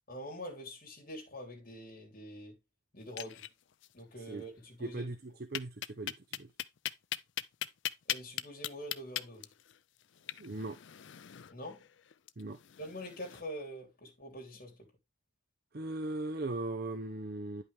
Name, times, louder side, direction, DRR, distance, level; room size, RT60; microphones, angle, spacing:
voice 1, 0.1-2.6 2.9-3.5 3.9-5.1 8.1-9.5 11.5-11.9 12.8-14.9, equal, 45° left, 3.2 m, -45 dB
sound 1, 3.0-3.9 4.2-4.3 4.6-4.7 5.5-13.4, left 12 dB, 60° left, 0.4 m, -40 dB
voice 2, 4.8-6.5 10.4-10.8 12.4-12.6 15.7-17.6, right 2 dB, 50° right, 0.7 m, -39 dB
9.8 x 5.6 x 3.4 m
head